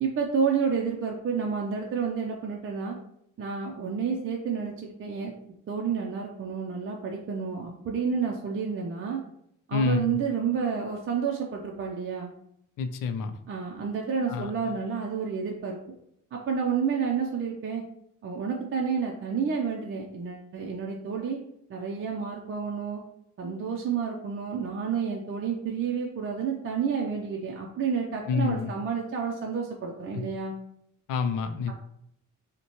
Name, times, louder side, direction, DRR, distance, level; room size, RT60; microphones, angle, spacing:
voice 1, 0.0-3.0 3.4-5.3 5.7-9.2 9.7-12.3 13.5-15.8 16.3-17.8 18.2-21.4 21.7-23.0 23.4-30.5 31.7-31.8, right 6 dB, 40° right, -1 dB, 0.5 m, -30 dB
voice 2, 9.7-10.2 12.8-13.3 14.3-14.5 28.3-28.7 31.1-31.7, left 5 dB, 75° left, 9 dB, 0.5 m, -27 dB
5.4 x 2.2 x 3.0 m, 0.74 s
cardioid pair, 150°, 32 cm